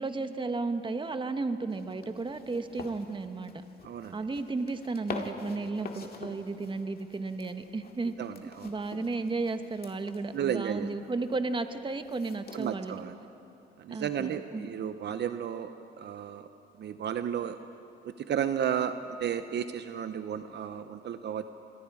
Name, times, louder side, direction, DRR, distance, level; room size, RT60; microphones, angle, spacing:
voice 1, 0.0-3.6 4.1-8.1 8.4-12.9 13.9-14.7, right 3 dB, 25° right, 9 dB, 1.2 m, -34 dB
sound 1, 1.7-13.0, left 4 dB, 50° left, 2.1 m, -46 dB
voice 2, 3.8-4.1 8.2-8.7 10.3-10.9 12.5-13.1 13.8-15.7 16.0-16.5 16.8-17.6 18.0-21.5, right 8 dB, 60° right, 10 dB, 0.8 m, -33 dB
27.5 x 21.5 x 4.9 m, 2.9 s
cardioid pair, 90°, 20 cm